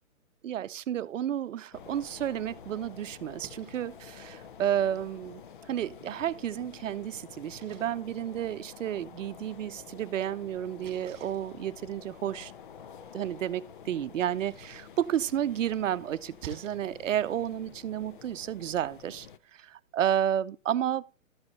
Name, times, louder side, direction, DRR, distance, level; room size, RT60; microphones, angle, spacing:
voice 1, 0.4-5.4 5.7-12.5 13.1-19.3 19.5-21.2, right 10 dB, 65° right, 0.6 m, -31 dB
sound 1, 1.7-19.4, left 7 dB, 40° left, 0.6 m, -49 dB
Splash splatter, 3.3-16.7, right 7 dB, 20° right, 2.4 m, -56 dB
13.0 x 5.2 x 4.1 m
hypercardioid pair, 155°, 41 cm